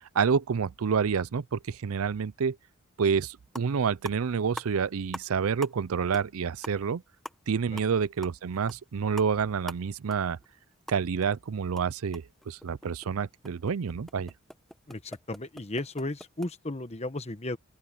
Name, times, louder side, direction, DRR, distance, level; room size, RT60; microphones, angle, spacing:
voice 1, 0.1-2.6 3.0-7.0 7.5-10.4 10.9-14.3, right 6 dB, 80° right, 0.5 m, -28 dB
sound 1, 3.1-3.2 3.5-3.8 4.0-5.3 5.6-5.9 6.1-6.3 6.6-11.3 11.6-16.5, equal, ahead, 0.9 m, -45 dB
voice 2, 14.9-17.6, left 2 dB, 30° left, 1.1 m, -35 dB
open air
head